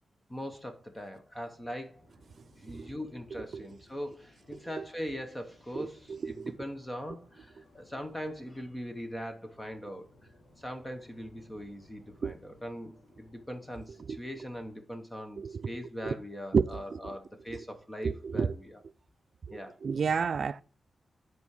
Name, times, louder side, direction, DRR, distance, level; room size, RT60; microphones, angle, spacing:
voice 1, 0.3-2.0 2.6-10.1 10.6-18.8 19.5-19.8, equal, 15° left, 0.9 m, -41 dB
sound 1, 1.5-14.7, left 1 dB, 75° left, 2.7 m, -61 dB
voice 2, 4.5-4.8 5.8-6.6 12.2-12.4 14.1-14.2 15.4-15.7 16.0-16.1 16.5-17.1 18.0-18.6 19.5-20.6, right 5 dB, 55° right, 0.3 m, -31 dB
8.2 x 4.7 x 4.8 m
wide cardioid pair, 145°, 0 cm